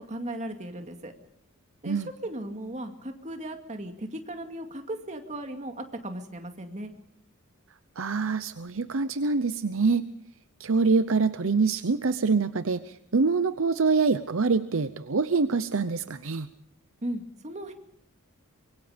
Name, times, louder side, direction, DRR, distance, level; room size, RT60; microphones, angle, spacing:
voice 1, 0.1-1.1 1.8-6.9 17.0-17.7, right 1 dB, 35° right, 5 dB, 2.3 m, -36 dB
voice 2, 8.0-10.0 10.6-16.5, right 4 dB, 65° right, 12 dB, 0.7 m, -25 dB
25.0 x 23.0 x 5.1 m, 0.72 s
head